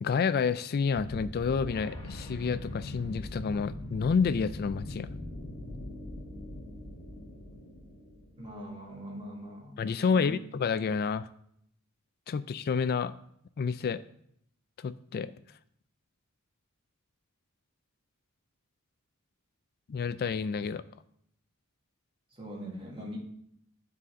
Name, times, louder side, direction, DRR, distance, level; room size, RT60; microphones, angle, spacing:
voice 1, 0.0-5.1 9.8-11.3 12.3-13.1 13.6-14.0 14.8-15.3 19.9-20.8, left 5 dB, 45° left, 14 dB, 0.3 m, -29 dB
sound 1, 0.9-8.7, left 1 dB, 25° left, 1.6 m, -41 dB
voice 2, 8.4-9.8 10.1-10.4 22.3-23.2, equal, 25° right, -2 dB, 2.1 m, -42 dB
9.9 x 4.1 x 6.2 m, 0.70 s
head